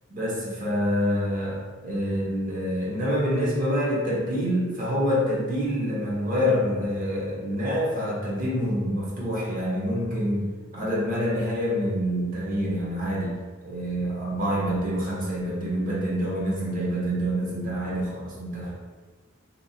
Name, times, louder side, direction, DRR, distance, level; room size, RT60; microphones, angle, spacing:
voice 1, 0.1-10.4 10.7-18.7, equal, 40° right, -6 dB, 0.7 m, -26 dB
2.8 x 2.0 x 2.7 m, 1.4 s
head